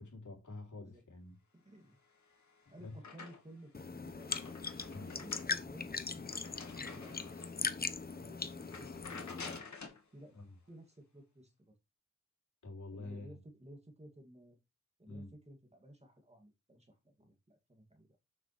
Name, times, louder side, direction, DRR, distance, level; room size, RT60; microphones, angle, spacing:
voice 1, 0.0-1.3 2.8-2.9 4.9-5.2 10.3-10.5 12.6-13.4 15.1-15.3, left 2 dB, 90° left, 3.6 m, -47 dB
voice 2, 1.5-2.0 2.7-4.4 5.0-7.5 8.0-9.6 10.1-10.3 10.7-11.5 12.9-14.6 15.0-18.2, right 1 dB, 20° right, 2.6 m, -56 dB
sound 1, 2.1-3.7 4.0-7.7 8.1-8.3 8.6-10.0, left 4 dB, 75° left, 2.6 m, -50 dB
sound 2, 3.7-9.6, left 4 dB, 30° left, 0.8 m, -40 dB
8.6 x 7.5 x 3.5 m
wide cardioid pair, 130°, 29 cm